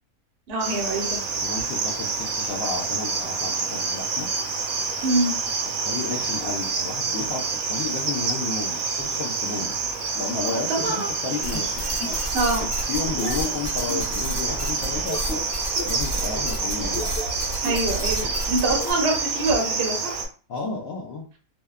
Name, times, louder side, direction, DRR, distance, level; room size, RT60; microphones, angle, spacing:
voice 1, 0.5-1.2 5.0-5.3 10.5-11.1 12.3-12.6 17.6-20.2, right 2 dB, 55° right, 0 dB, 0.8 m, -25 dB
Cricket, 0.6-20.3, right 4 dB, 75° right, 1.0 m, -28 dB
voice 2, 1.3-4.3 5.8-9.8 10.1-12.2 12.9-15.5 15.8-17.1 20.5-21.3, left 4 dB, 70° left, -2 dB, 0.6 m, -32 dB
sound 1, 11.4-18.9, equal, 45° left, 1.0 m, -31 dB
2.6 x 2.1 x 2.3 m, 0.39 s
omnidirectional pair, 1.5 m